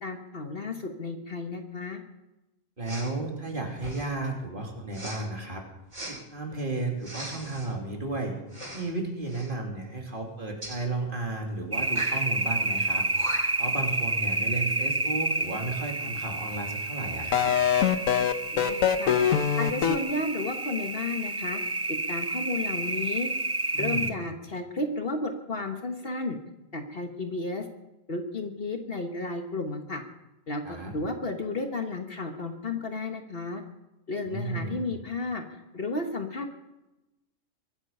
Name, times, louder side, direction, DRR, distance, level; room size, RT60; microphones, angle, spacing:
voice 1, 0.0-2.0 18.5-19.2 19.6-21.6 21.9-23.3 23.7-26.4 26.7-27.6 28.1-30.0 30.5-33.6 34.1-36.6, left 3 dB, 45° left, 5 dB, 1.4 m, -33 dB
voice 2, 2.8-5.6 6.1-8.3 8.7-13.1 13.6-17.5 23.8-24.1 30.6-30.9 34.3-34.8, right 2 dB, 40° right, 1 dB, 2.9 m, -33 dB
Respiratory sounds, 2.8-3.1 3.7-4.2 4.9-5.2 5.9-6.1 7.0-7.7 8.5-8.9 9.2-9.5 10.6-10.8 11.9-12.2 12.9-13.0 13.2-13.6, right 1 dB, 65° right, 8.3 m, -39 dB
sound 1, 11.7-24.1, right 2 dB, 20° right, 0.4 m, -30 dB
sound 2, 17.3-20.0, left 9 dB, 85° left, 1.3 m, -23 dB
23.5 x 9.0 x 5.5 m, 0.97 s
omnidirectional pair, 1.4 m